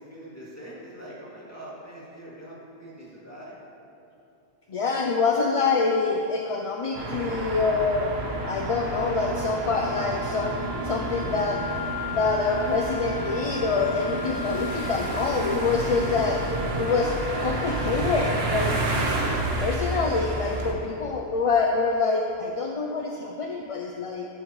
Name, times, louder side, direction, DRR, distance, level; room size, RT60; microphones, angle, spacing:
voice 1, 0.0-3.6, right 1 dB, 15° left, -7 dB, 2.4 m, -43 dB
voice 2, 4.7-8.1 8.4-11.6 12.1-16.4 16.8-18.7 19.6-24.3, left 4 dB, 45° left, 1 dB, 0.5 m, -26 dB
sound 1, 7.0-20.7, right 2 dB, 80° right, 1.3 m, -30 dB
sound 2, 8.1-17.3, right 3 dB, 25° right, 0.4 m, -40 dB
Wind instrument woodwind instrument, 9.7-18.8, left 4 dB, 45° right, 1.7 m, -37 dB
11.5 x 11.0 x 3.1 m, 2.7 s
omnidirectional pair, 1.0 m